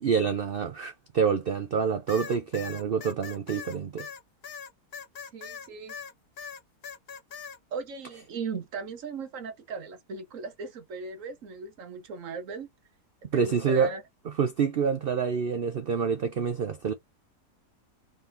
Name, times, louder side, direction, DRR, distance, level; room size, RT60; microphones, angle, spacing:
voice 1, 0.0-4.1 13.3-13.9 14.3-16.9, right 6 dB, 70° right, 0.5 m, -27 dB
sound 1, 2.1-6.1 6.4-7.6, left 7 dB, 50° left, 0.8 m, -41 dB
voice 2, 5.2-5.9 7.7-12.7 13.3-14.0, right 4 dB, 55° right, 1.4 m, -38 dB
3.9 x 3.5 x 2.7 m
omnidirectional pair, 1.7 m